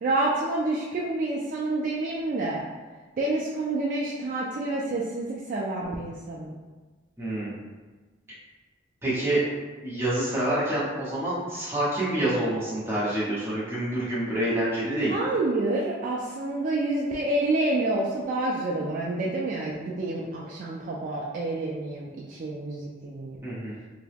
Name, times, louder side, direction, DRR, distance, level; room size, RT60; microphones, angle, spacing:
voice 1, 0.0-2.6 3.2-6.6 15.1-23.5, right 2 dB, 45° right, -4 dB, 0.3 m, -28 dB
voice 2, 7.2-7.6 9.0-9.4 9.8-15.1 23.4-23.8, right 1 dB, 15° right, -9 dB, 1.0 m, -27 dB
2.8 x 2.2 x 3.4 m, 1.3 s
head